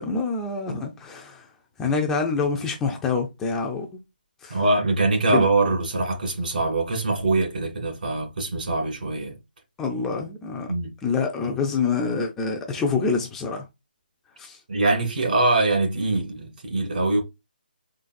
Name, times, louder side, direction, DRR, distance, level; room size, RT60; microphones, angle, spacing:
voice 1, 0.0-1.5 1.8-3.9 4.4-4.6 5.3-5.5 9.8-10.7 11.0-13.6 14.4-14.6, left 4 dB, 5° left, 0.3 m, -26 dB
voice 2, 4.5-9.4 10.7-10.9 14.7-17.2, right 2 dB, 65° right, 1.8 m, -23 dB
3.8 x 3.8 x 2.5 m
hypercardioid pair, 165°, 5 cm